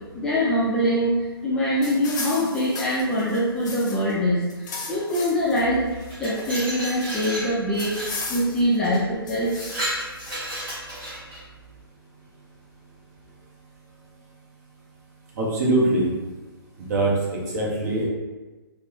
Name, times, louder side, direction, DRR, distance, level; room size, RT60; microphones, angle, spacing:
voice 1, 0.2-1.2 1.4-5.9 6.2-8.0 8.3-9.5, equal, 5° left, -10 dB, 0.4 m, -23 dB
sound 1, 1.8-4.1 4.4-5.6 6.0-7.2 7.8-8.8 9.3-10.4, left 3 dB, 45° left, 0.6 m, -36 dB
Glass, 5.9-8.2 8.8-9.0 9.4-11.4, equal, 15° right, 1.5 m, -32 dB
voice 2, 15.3-16.1 16.8-18.1, right 2 dB, 40° right, -3 dB, 0.8 m, -23 dB
3.3 x 2.0 x 2.9 m, 1.2 s
figure-of-eight pair, 130°, 13 cm